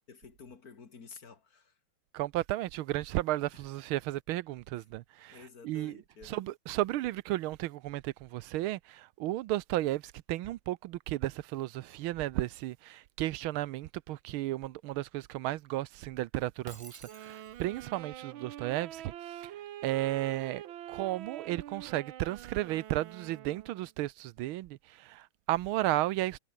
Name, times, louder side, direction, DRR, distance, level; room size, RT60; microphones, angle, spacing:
voice 1, 0.1-1.8 3.5-3.6 4.7-4.9 5.3-6.5, left 5 dB, 45° left, 2.7 m, -52 dB
voice 2, 2.1-5.4 5.6-5.9 6.3-19.1 19.4-19.5 19.8-26.4, right 16 dB, 90° right, 1.5 m, -34 dB
Shatter, 16.7-17.9, right 3 dB, 25° right, 0.7 m, -51 dB
Wind instrument woodwind instrument, 17.0-23.9, right 12 dB, 75° right, 1.7 m, -46 dB
omnidirectional pair, 2.3 m